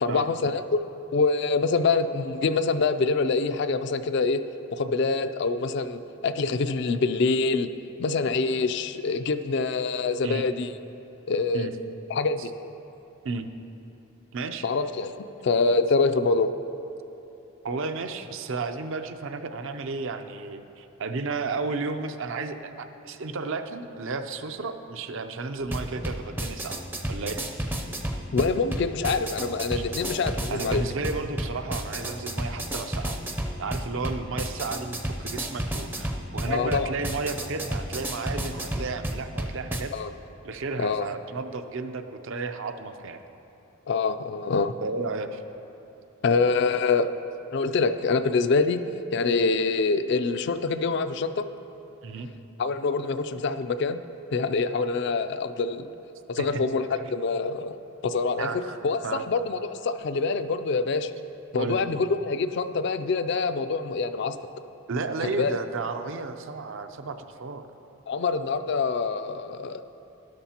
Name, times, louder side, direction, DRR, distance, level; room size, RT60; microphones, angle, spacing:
voice 1, 0.0-4.4 4.7-7.7 8.0-10.7 11.3-11.7 12.1-12.4 14.6-15.2 15.4-16.5 28.3-30.8 36.5-36.9 39.9-40.1 40.8-41.1 43.9-44.7 46.2-47.1 47.5-48.8 49.1-51.5 52.6-54.0 54.3-55.9 56.3-57.8 58.0-61.1 61.5-64.4 65.2-65.6 68.1-69.8, left 4 dB, 50° left, 10 dB, 0.3 m, -25 dB
voice 2, 14.3-14.7 17.6-26.8 27.1-27.4 29.7-29.8 30.5-33.1 33.6-39.9 40.4-43.2 44.8-45.4 52.0-52.3 56.4-56.6 58.4-58.8 59.0-59.2 61.6-61.8 64.9-67.7, right 3 dB, 65° right, 8 dB, 0.5 m, -33 dB
sound 1, 25.6-39.8, right 1 dB, 10° right, 0.5 m, -32 dB
13.0 x 11.5 x 2.9 m, 3.0 s
head